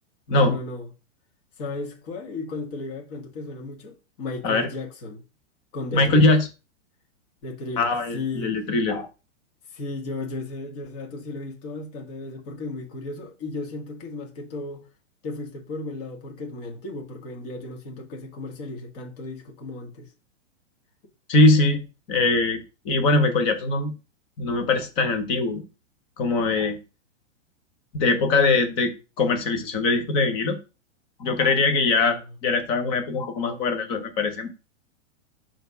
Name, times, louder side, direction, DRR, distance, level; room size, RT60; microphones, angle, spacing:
voice 1, 0.3-0.9 1.6-5.2 5.7-6.3 7.4-8.5 9.7-14.8 15.2-20.1 32.0-32.2, left 2 dB, 30° left, 1.6 m, -35 dB
voice 2, 5.9-6.5 7.8-9.1 21.3-23.9 24.4-25.6 26.2-26.8 27.9-30.6 31.2-32.2 32.4-34.5, left 3 dB, 15° left, 0.5 m, -22 dB
5.6 x 3.3 x 5.5 m
supercardioid pair, 170°, 38 cm